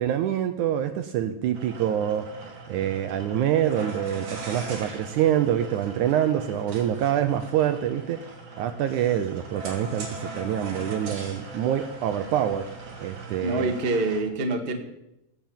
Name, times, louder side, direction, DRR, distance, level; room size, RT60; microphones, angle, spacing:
voice 1, 0.0-2.3 2.7-8.3 8.6-12.7 13.0-13.7, right 10 dB, 75° right, 9 dB, 1.9 m, -26 dB
sound 1, 1.5-14.2, right 2 dB, 60° right, 4.4 m, -40 dB
voice 2, 13.4-14.8, right 2 dB, 35° right, 4 dB, 0.9 m, -26 dB
18.5 x 7.7 x 8.7 m, 0.85 s
omnidirectional pair, 4.1 m